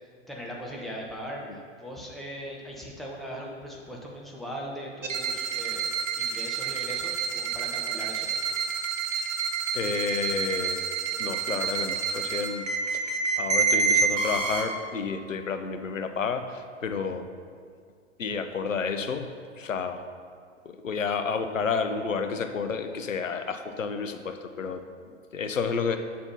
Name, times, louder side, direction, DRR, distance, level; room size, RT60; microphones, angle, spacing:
voice 1, 0.0-8.3, equal, ahead, -3 dB, 1.0 m, -39 dB
sound 1, 5.0-14.6, right 5 dB, 75° right, 1.2 m, -28 dB
voice 2, 9.7-10.8 11.2-17.3 18.2-19.3 19.6-20.0 20.6-26.0, left 5 dB, 85° left, 8 dB, 0.6 m, -31 dB
7.2 x 4.3 x 5.6 m, 2.1 s
figure-of-eight pair, 105°, 38 cm